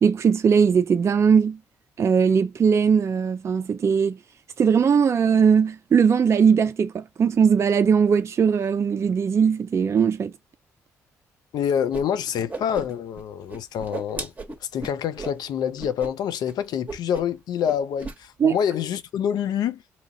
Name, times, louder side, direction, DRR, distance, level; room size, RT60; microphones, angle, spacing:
voice 1, 0.0-1.6 2.0-4.2 4.6-10.3 18.4-18.6, right 6 dB, 40° right, 0.4 m, -19 dB
voice 2, 11.5-14.3 14.6-19.8, left 8 dB, 60° left, 0.5 m, -26 dB
Whoosh swoosh swish, 11.9-12.0 12.3-13.2 13.5-15.4 15.8-16.1 16.3-16.5 16.9-17.4 17.6-18.2, right 3 dB, 20° right, 1.0 m, -35 dB
2.8 x 2.5 x 2.7 m
hypercardioid pair, 50°, 8 cm